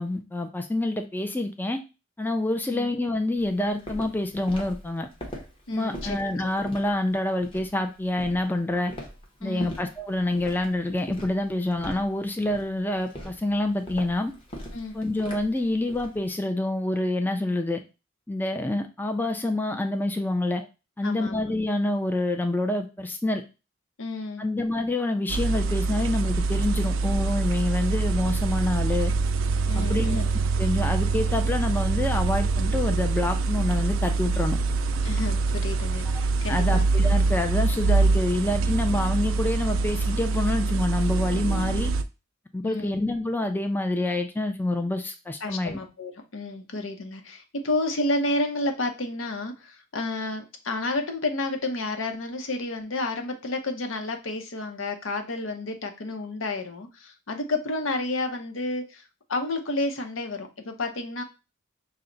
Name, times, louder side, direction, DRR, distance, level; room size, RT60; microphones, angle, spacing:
voice 1, 0.0-1.8 2.2-5.1 5.7-8.9 9.4-14.3 14.9-17.8 18.3-20.6 21.0-23.4 24.4-29.1 29.8-30.2 30.6-34.6 36.5-41.9 42.5-45.8, left 1 dB, 10° left, 5 dB, 0.3 m, -27 dB
Walk footsteps, 3.4-16.2, equal, 25° left, 1.0 m, -41 dB
voice 2, 5.7-6.5 9.4-9.7 14.7-15.0 21.0-21.4 24.0-24.5 29.7-30.3 35.0-36.9 42.6-42.9 45.4-59.0 59.3-61.2, left 2 dB, 80° left, 6 dB, 0.7 m, -31 dB
sound 1, 25.3-42.0, right 3 dB, 85° right, 0.4 m, -24 dB
5.6 x 2.1 x 3.8 m, 0.29 s
head